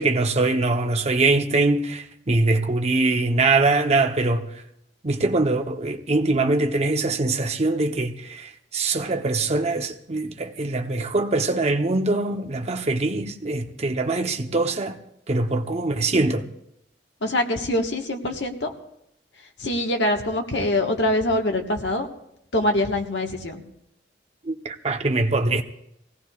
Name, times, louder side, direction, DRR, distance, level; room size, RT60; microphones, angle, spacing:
voice 1, 0.0-4.6 5.0-15.0 15.3-16.4 24.4-25.6, right 2 dB, 40° right, 0.8 m, -23 dB
voice 2, 17.2-18.7 19.6-22.1 22.5-23.6, left 1 dB, 75° left, 1.4 m, -24 dB
23.5 x 17.0 x 2.4 m
head